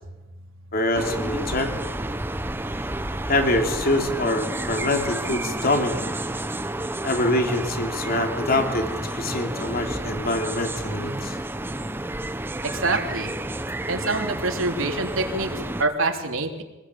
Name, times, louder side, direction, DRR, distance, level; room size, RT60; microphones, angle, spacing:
voice 1, 0.7-1.7 3.3-6.1 7.0-11.4, left 1 dB, 45° left, 4 dB, 3.0 m, -25 dB
sound 1, 0.9-15.8, right 1 dB, 10° right, 0.9 m, -30 dB
voice 2, 12.6-13.3 13.9-16.6, right 3 dB, 75° right, 3 dB, 3.4 m, -26 dB
25.5 x 20.5 x 8.7 m, 1.1 s
head